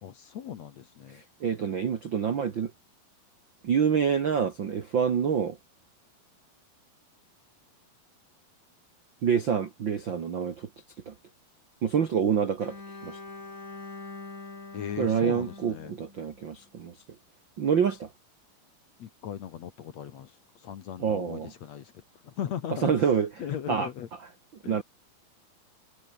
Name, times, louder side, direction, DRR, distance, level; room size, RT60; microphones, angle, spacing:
voice 1, 0.0-1.2 14.7-15.9 19.0-23.1 23.4-24.1 24.6-24.8, left 9 dB, 55° left, 2.1 m, -38 dB
voice 2, 1.1-2.7 3.6-5.6 9.2-10.7 11.0-11.1 11.8-12.8 13.0-13.2 15.0-17.0 17.6-18.1 21.0-21.5 22.8-23.3 23.7-23.9 24.6-24.8, right 7 dB, 65° right, 1.2 m, -27 dB
Bowed string instrument, 12.6-16.7, left 3 dB, 20° left, 3.9 m, -44 dB
omnidirectional pair, 4.4 m